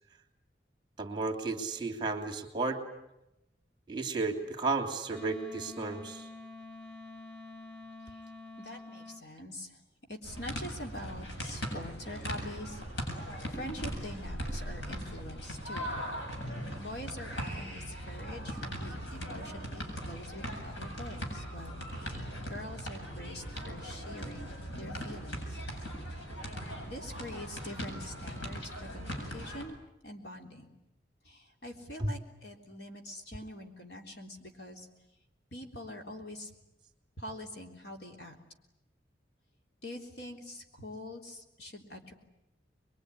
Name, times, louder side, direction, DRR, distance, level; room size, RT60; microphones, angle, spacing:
voice 1, 1.0-2.8 3.9-6.3 32.0-32.1, right 3 dB, 25° right, 5 dB, 2.9 m, -33 dB
Wind instrument woodwind instrument, 5.1-9.2, left 3 dB, 5° left, 1.9 m, -47 dB
voice 2, 8.6-9.7 10.1-12.8 13.5-16.0 16.8-22.2 22.5-25.6 26.9-29.8 30.0-30.6 31.3-34.9 35.5-36.5 37.2-38.3 39.8-42.1, left 1 dB, 65° left, 3 dB, 3.6 m, -44 dB
sound 1, 10.2-29.6, equal, 85° left, 7.8 m, -39 dB
24.0 x 23.0 x 10.0 m, 0.91 s
head